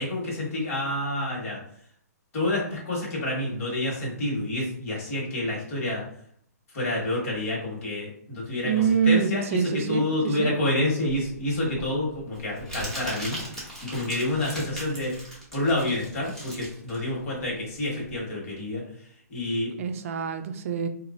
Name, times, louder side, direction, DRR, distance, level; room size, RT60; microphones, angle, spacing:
voice 1, 0.0-1.6 2.3-6.0 6.7-8.7 9.0-13.4 13.8-15.2 15.5-18.8 19.3-19.7, left 1 dB, 50° left, -3 dB, 1.3 m, -28 dB
voice 2, 8.6-10.5 19.8-20.9, right 7 dB, 50° right, 8 dB, 0.4 m, -25 dB
Crumpling crinkling, 11.1-18.2, right 1 dB, 5° left, 0.9 m, -39 dB
2.9 x 2.3 x 2.5 m, 0.63 s
hypercardioid pair, 150°, 9 cm